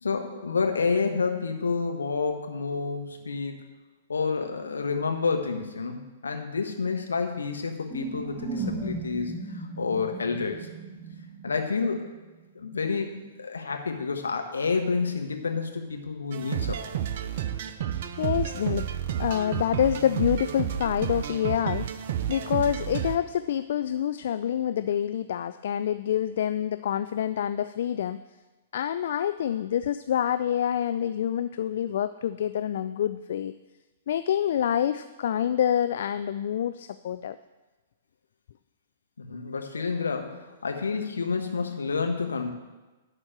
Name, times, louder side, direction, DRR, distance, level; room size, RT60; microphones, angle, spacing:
voice 1, 0.0-3.5 4.1-10.7 11.4-12.1 12.5-16.8 39.2-42.5, left 4 dB, 70° left, 4 dB, 1.3 m, -29 dB
sound 1, 7.9-12.5, right 2 dB, ahead, 2.0 m, -36 dB
sound 2, 16.3-23.2, right 10 dB, 50° right, 0.6 m, -31 dB
voice 2, 18.2-18.9 19.2-21.9 22.3-28.2 28.7-33.5 34.1-37.4, left 10 dB, 55° left, 11 dB, 0.3 m, -27 dB
11.5 x 4.4 x 7.6 m, 1.2 s
figure-of-eight pair, 110°, 0 cm